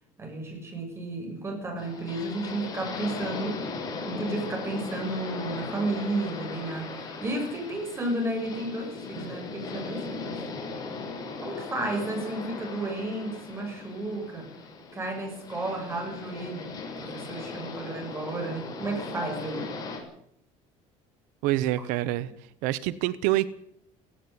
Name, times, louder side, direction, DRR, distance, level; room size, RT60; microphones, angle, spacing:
voice 1, 0.2-3.6 4.1-10.4 11.4-14.5 14.9-19.7, right 2 dB, 20° right, 3 dB, 7.2 m, -32 dB
sound 1, 1.8-20.0, left 4 dB, 30° left, 6.8 m, -38 dB
voice 2, 21.4-22.3 22.6-23.5, right 15 dB, 90° right, 15 dB, 1.0 m, -26 dB
17.0 x 17.0 x 9.6 m, 0.71 s
cardioid pair, 155°, 13 cm